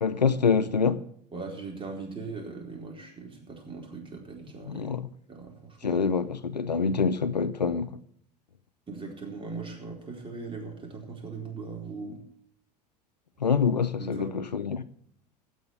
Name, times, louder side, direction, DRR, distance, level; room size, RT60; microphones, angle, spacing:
voice 1, 0.0-1.0 4.7-5.1 5.8-7.9 13.4-14.8, left 5 dB, 90° left, 0.6 m, -26 dB
voice 2, 1.3-4.9 5.3-6.0 8.9-12.2 14.0-14.3, right 4 dB, 25° right, 4.2 m, -39 dB
16.0 x 6.4 x 8.2 m
figure-of-eight pair, 80°, 21 cm